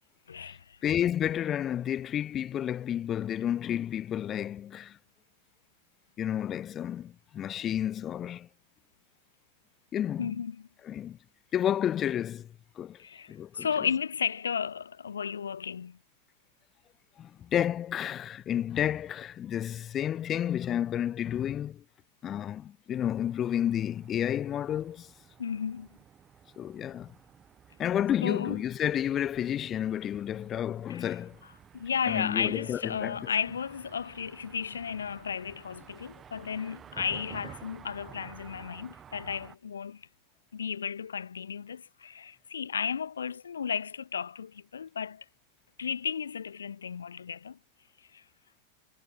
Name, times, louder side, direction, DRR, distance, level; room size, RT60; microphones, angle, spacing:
voice 1, 0.3-0.8 10.2-10.7 13.0-16.0 25.4-25.9 28.2-28.6 30.9-31.2 31.7-40.0 40.5-45.2 45.8-47.6 48.1-48.2, left 7 dB, 70° left, 0.5 m, -34 dB
voice 2, 0.8-5.0 6.2-8.5 9.9-10.4 10.8-11.2 11.5-12.5 12.8-13.0 13.3-13.7 17.2-21.8 22.2-25.1 26.6-27.1 27.8-31.4 32.1-33.2, left 10 dB, 30° left, 0.8 m, -31 dB
sound 1, 22.9-39.6, right 8 dB, 25° right, 1.3 m, -52 dB
figure-of-eight pair, 90°, 0 cm